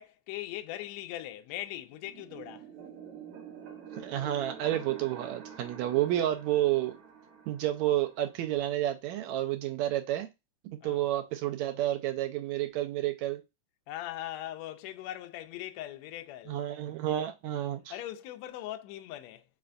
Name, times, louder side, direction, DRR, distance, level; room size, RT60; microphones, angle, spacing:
voice 1, 0.0-2.7 10.8-11.1 13.9-16.6 17.9-19.4, left 13 dB, 80° left, 1.6 m, -40 dB
sound 1, 2.0-8.6, right 7 dB, 65° right, 2.6 m, -47 dB
voice 2, 4.0-7.0 7.5-10.3 10.6-13.4 16.5-17.9, right 13 dB, 80° right, 1.7 m, -30 dB
5.0 x 3.3 x 2.5 m
omnidirectional pair, 3.6 m